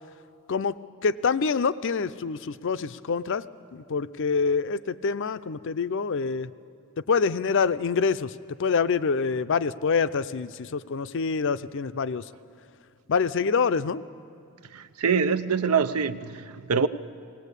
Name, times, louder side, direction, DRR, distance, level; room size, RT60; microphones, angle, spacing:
voice 1, 0.5-3.4 3.7-6.5 7.1-8.3 8.6-12.2 13.1-14.0, left 5 dB, 60° left, 14 dB, 0.5 m, -26 dB
voice 2, 14.7-16.9, right 6 dB, 85° right, 12 dB, 0.7 m, -25 dB
19.5 x 18.5 x 8.2 m, 2.4 s
head